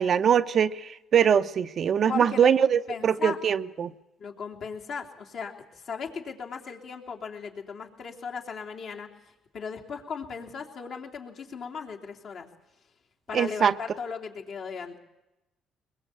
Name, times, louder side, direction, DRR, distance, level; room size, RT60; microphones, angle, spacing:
voice 1, 0.0-3.9 13.3-13.7, right 8 dB, 55° right, 11 dB, 0.8 m, -22 dB
voice 2, 2.1-2.5 2.9-3.4 4.2-5.5 5.9-9.1 9.5-12.5 13.3-15.0, left 6 dB, 60° left, 1 dB, 3.2 m, -37 dB
21.5 x 21.5 x 8.5 m, 0.96 s
cardioid pair, 85°, 0 cm